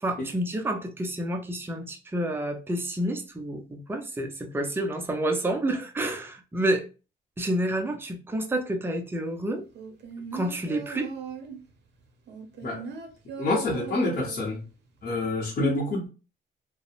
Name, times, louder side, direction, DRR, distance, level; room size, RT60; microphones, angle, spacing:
voice 1, 0.0-6.9 7.4-9.6 10.3-11.1, right 1 dB, 10° right, 0.5 m, -29 dB
sound 1, 9.8-11.7 12.3-14.7 15.0-15.1, right 5 dB, 60° right, 0.6 m, -38 dB
voice 2, 13.4-14.6 15.0-16.1, left 2 dB, 45° left, 0.8 m, -27 dB
2.7 x 2.0 x 2.3 m
cardioid pair, 90°, 20 cm